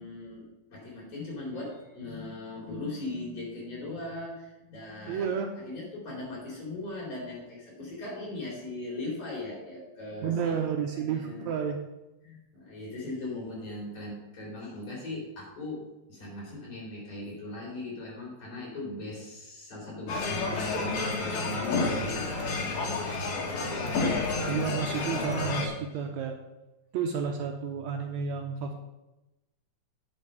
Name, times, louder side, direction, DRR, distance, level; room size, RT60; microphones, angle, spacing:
voice 1, 0.0-5.3 5.6-10.6 10.9-11.5 12.2-15.8 16.1-23.1, left 2 dB, 50° left, -4 dB, 4.7 m, -39 dB
voice 2, 5.1-5.5 10.2-11.8 24.5-26.4 26.9-28.8, right 7 dB, 75° right, 4 dB, 1.8 m, -31 dB
sound 1, 20.1-25.7, left 3 dB, 65° left, 3.0 m, -30 dB
8.6 x 7.2 x 5.6 m, 0.98 s
omnidirectional pair, 3.6 m